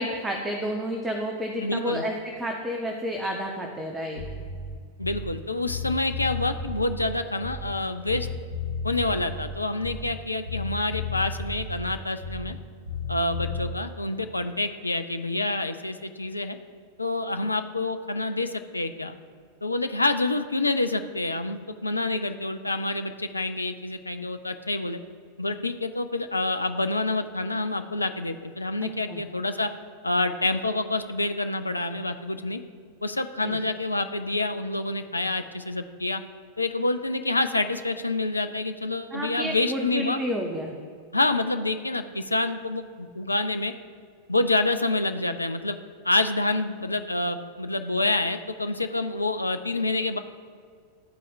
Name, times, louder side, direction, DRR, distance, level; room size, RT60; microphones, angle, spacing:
voice 1, 0.0-4.2 28.8-29.2 33.4-33.6 39.1-40.8, equal, 15° right, 2 dB, 0.7 m, -30 dB
voice 2, 1.6-2.0 5.0-8.3 8.8-12.6 13.1-16.6 17.0-19.2 19.6-25.0 25.4-29.7 30.0-32.6 33.0-36.2 36.6-40.2 41.1-43.7 44.3-45.8 46.0-50.2, left 2 dB, 80° left, 7 dB, 0.3 m, -27 dB
Bass guitar, 4.1-5.4 5.6-7.8 8.0-10.2 10.4-12.6 12.8-13.7, left 3 dB, 85° right, 1.3 m, -34 dB
12.0 x 4.1 x 2.4 m, 2.1 s
figure-of-eight pair, 90°, 0 cm